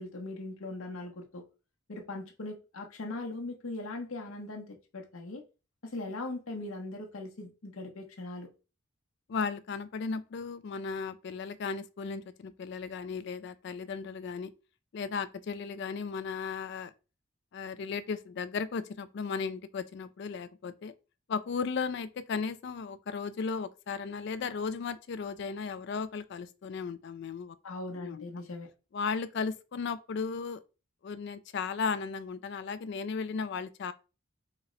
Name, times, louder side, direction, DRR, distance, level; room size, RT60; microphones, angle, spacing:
voice 1, 0.0-1.4 1.9-5.4 5.8-8.5 27.6-28.7, left 2 dB, 80° left, 0.8 m, -40 dB
voice 2, 9.3-14.5 14.9-16.9 17.5-20.9 21.3-27.6 27.9-28.3 28.9-30.6 31.0-33.9, left 5 dB, 55° left, 0.3 m, -35 dB
4.1 x 2.1 x 3.8 m
head